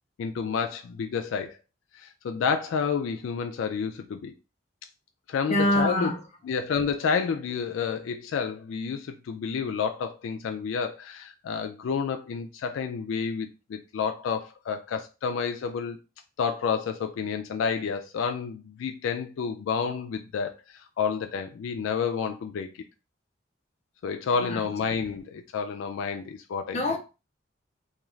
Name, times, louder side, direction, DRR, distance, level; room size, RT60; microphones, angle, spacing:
voice 1, 0.2-1.6 2.0-4.3 5.3-6.1 6.4-16.0 16.4-22.7 24.0-26.8, left 6 dB, 80° left, 0.3 m, -30 dB
voice 2, 5.5-6.2 24.4-24.6 26.7-27.0, left 1 dB, 35° left, 0.6 m, -24 dB
2.4 x 2.3 x 3.1 m
head